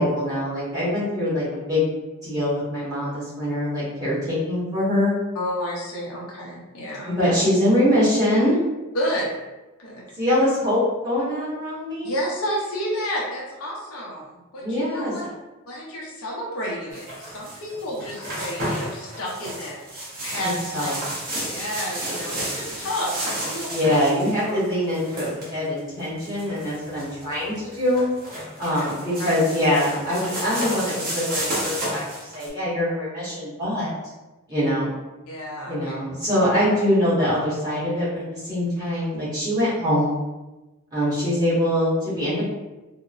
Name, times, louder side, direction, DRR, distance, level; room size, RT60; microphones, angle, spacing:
voice 1, 0.0-1.9 2.2-5.1 7.1-8.6 10.2-12.1 14.6-15.1 20.7-20.9 23.7-28.1 28.6-32.0 32.3-33.9 34.5-34.9 35.7-40.2 40.9-42.4, left 1 dB, 20° right, -12 dB, 1.0 m, -23 dB
voice 2, 5.3-7.3 8.9-9.3 9.8-10.0 12.0-14.2 14.5-14.6 14.9-15.2 15.7-20.9 21.5-23.9 24.4-24.6 28.6-28.9 29.2-29.3 34.6-34.7 35.3-35.9, equal, 75° left, -4 dB, 0.6 m, -30 dB
sound 1, 16.9-32.5, right 1 dB, 45° right, 0.8 m, -32 dB
2.8 x 2.0 x 2.4 m, 1.1 s
head